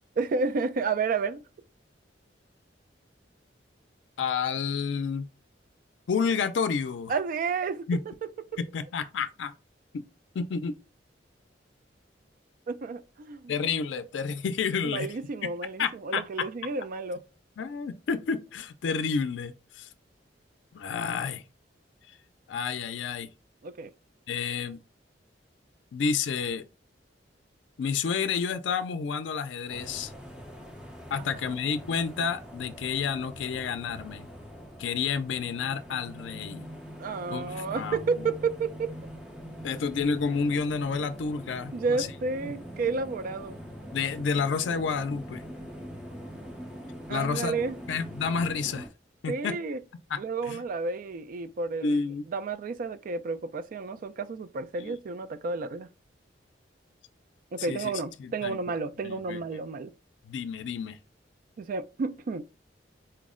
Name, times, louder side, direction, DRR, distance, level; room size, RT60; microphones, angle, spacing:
voice 1, 0.2-1.4 7.1-7.9 12.7-13.5 14.8-17.2 23.6-23.9 31.2-31.3 37.0-38.9 41.7-43.6 47.1-47.8 49.3-49.8 50.2-52.0 52.3-55.9 57.5-59.9 61.6-62.4, right 4 dB, 50° right, 0.3 m, -31 dB
voice 2, 4.2-5.3 6.1-7.1 7.9-8.0 8.6-9.5 10.3-10.8 13.5-15.1 15.4-15.5 15.8-16.5 17.6-19.9 20.7-21.4 22.5-23.3 24.3-24.8 25.9-26.6 27.8-30.1 31.1-34.3 34.8-36.7 37.3-38.0 39.6-42.1 43.9-45.4 47.1-47.6 47.9-48.9 49.2-49.6 50.1-50.2 50.5-50.6 51.8-52.2 54.8-54.9 57.6-57.9 58.2-58.6 59.0-59.4 60.3-61.0, left 5 dB, 90° left, 0.4 m, -30 dB
sound 1, 29.7-48.9, equal, 5° right, 0.7 m, -43 dB
4.3 x 2.0 x 3.6 m
head